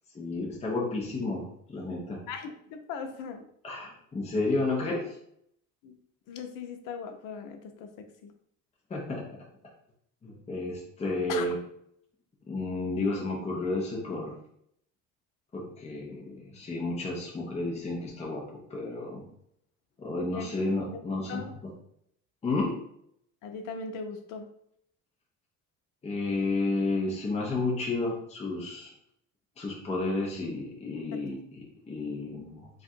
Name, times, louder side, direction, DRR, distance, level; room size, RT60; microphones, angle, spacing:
voice 1, 0.1-2.2 3.6-5.2 8.9-9.4 10.2-11.6 12.5-14.4 15.5-19.2 20.0-21.7 22.4-22.8 26.0-28.9 29.6-32.7, left 2 dB, 20° left, -3 dB, 0.7 m, -32 dB
voice 2, 2.3-3.4 5.8-6.0 6.3-8.3 11.3-11.5 20.3-20.4 21.3-21.5 23.4-24.5 31.1-31.2, left 5 dB, 85° left, 6 dB, 0.7 m, -38 dB
3.6 x 2.5 x 4.3 m, 0.71 s
cardioid pair, 145°, 32 cm